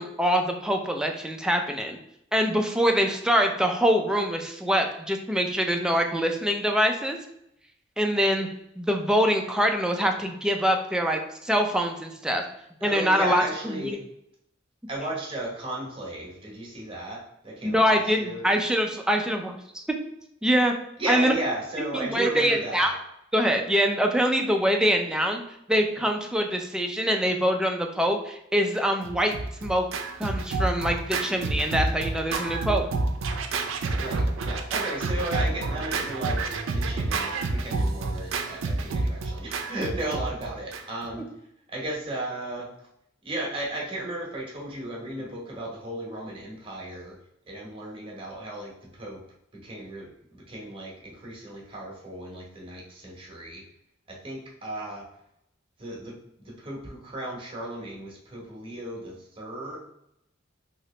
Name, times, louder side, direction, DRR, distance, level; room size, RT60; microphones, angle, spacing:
voice 1, 0.0-2.0 2.3-7.2 8.0-8.5 8.8-12.4 12.8-14.0 17.6-19.8 20.4-20.7 21.1-21.3 21.8-22.9 23.3-25.4 25.7-29.3 29.6-29.9 30.2-32.8, equal, 5° right, 3 dB, 0.3 m, -24 dB
voice 2, 12.8-14.0 14.9-18.4 21.0-22.9 34.0-41.3 41.7-42.7 43.2-47.2 47.5-49.2 49.5-53.6 54.1-55.1 55.8-59.8, right 1 dB, 30° right, -2 dB, 0.9 m, -35 dB
Scratching (performance technique), 29.0-41.1, right 3 dB, 85° right, 0.4 m, -29 dB
2.9 x 2.8 x 3.1 m, 0.78 s
head